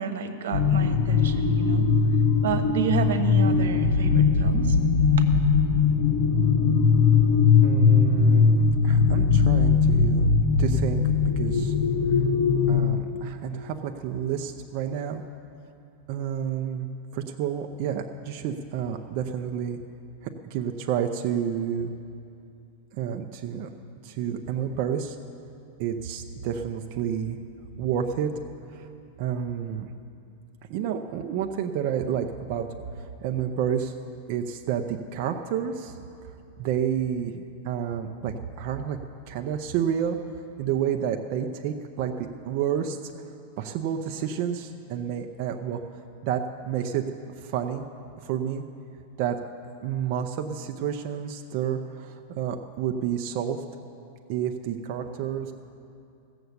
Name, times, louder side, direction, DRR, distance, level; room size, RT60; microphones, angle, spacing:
voice 1, 0.0-1.9 2.4-4.8 5.2-5.3, right 7 dB, 85° right, 9 dB, 1.1 m, -30 dB
sound 1, 0.5-12.8, left 5 dB, 65° left, 1.3 m, -20 dB
voice 2, 7.6-10.3 10.6-11.0 11.4-11.7 12.7-15.2 16.1-16.9 17.1-19.8 20.2-21.9 22.9-23.7 24.0-25.2 25.8-27.4 27.8-28.3 28.7-28.9 29.2-29.9 30.7-32.7 32.9-33.9 34.3-36.0 36.6-39.0 39.3-40.2 40.6-43.0 43.6-45.8 46.2-47.0 47.4-47.8 48.2-48.6 49.2-49.4 49.8-53.6 54.3-55.5, right 9 dB, 40° right, 4 dB, 0.6 m, -29 dB
15.5 x 6.9 x 8.0 m, 2.6 s
supercardioid pair, 170°, 0 cm